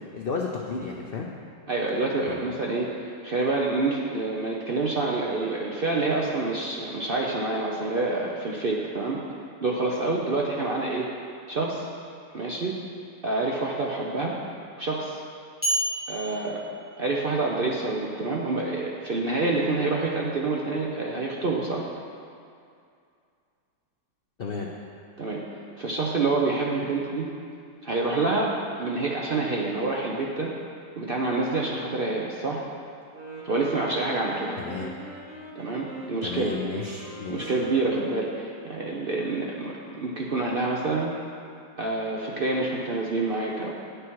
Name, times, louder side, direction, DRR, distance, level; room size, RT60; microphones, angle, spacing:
voice 1, 0.1-1.3 2.3-2.4 24.4-24.7 34.6-34.9 36.2-37.5, left 4 dB, 80° left, -1 dB, 0.5 m, -32 dB
voice 2, 1.7-9.2 9.6-11.1 11.5-11.9 12.3-12.8 13.2-14.3 14.8-15.2 16.1-16.6 17.0-21.9 25.2-25.4 25.8-27.3 27.8-30.5 31.0-32.6 33.4-34.6 35.5-36.5 37.3-41.1 41.8-43.7, right 3 dB, 55° right, -3 dB, 0.6 m, -27 dB
sound 1, 15.6-17.7, right 1 dB, 5° right, 1.5 m, -31 dB
Wind instrument woodwind instrument, 33.0-38.3, right 1 dB, 25° right, 1.3 m, -41 dB
9.6 x 6.6 x 4.6 m, 2.4 s
omnidirectional pair, 1.9 m